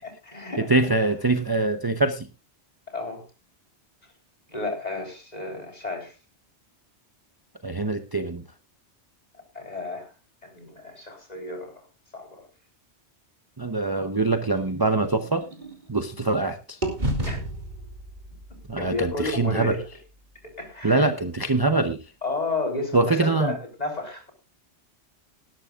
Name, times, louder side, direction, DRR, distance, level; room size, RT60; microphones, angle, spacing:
voice 1, 0.0-0.7 2.9-3.2 4.5-6.1 9.5-10.1 10.4-11.8 12.1-12.5 17.2-17.4 18.8-19.8 20.4-21.1 22.2-24.3, left 2 dB, 35° left, 3 dB, 3.9 m, -32 dB
voice 2, 0.7-2.3 7.6-8.4 13.6-15.4 15.9-16.8 18.7-19.7 20.8-22.0 22.9-23.6, right 3 dB, 20° right, 7 dB, 0.8 m, -23 dB
sound 1, 14.1-16.4 16.8-20.8, right 1 dB, 40° right, 2.9 m, -34 dB
18.0 x 12.5 x 2.4 m, 0.28 s
omnidirectional pair, 1.1 m